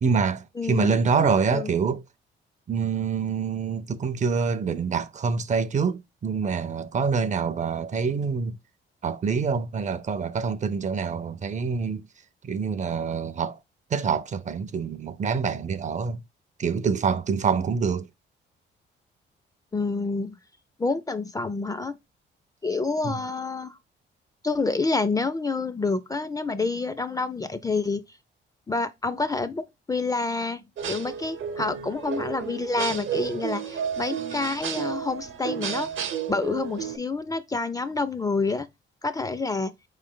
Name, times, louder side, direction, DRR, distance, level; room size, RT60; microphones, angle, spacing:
voice 1, 0.0-2.0 2.7-8.6 9.0-12.0 12.4-13.6 13.9-16.2 16.6-18.1 23.0-23.2, right 5 dB, 40° right, 0.5 m, -26 dB
voice 2, 0.6-1.7 19.7-20.4 20.8-22.0 22.6-23.8 24.4-28.0 28.7-35.9 36.3-38.7 39.0-39.7, left 3 dB, 20° left, 0.4 m, -28 dB
sound 1, 30.8-37.0, right 8 dB, 75° right, 0.9 m, -32 dB
4.4 x 3.2 x 3.7 m
cardioid pair, 90°, 20 cm